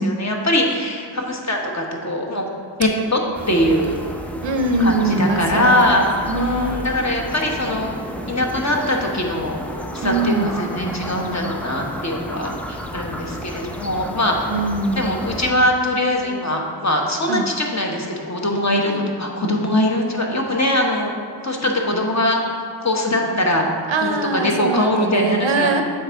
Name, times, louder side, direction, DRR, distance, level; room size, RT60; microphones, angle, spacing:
voice 1, 0.0-2.4 2.8-3.2 3.5-4.0 4.8-6.1 6.3-7.9 8.3-14.3 14.9-21.1 21.4-22.4 22.8-23.6 24.0-25.7, left 1 dB, 35° left, 0 dB, 1.1 m, -21 dB
sound 1, 3.3-15.5, equal, 5° left, 0.5 m, -32 dB
voice 2, 4.4-6.0 6.3-6.8 10.0-10.5 14.5-15.1 17.3-17.5 18.8-19.1 23.9-25.8, right 2 dB, 80° right, 6 dB, 0.7 m, -22 dB
7.6 x 3.7 x 4.5 m, 2.2 s
cardioid pair, 45°, 45 cm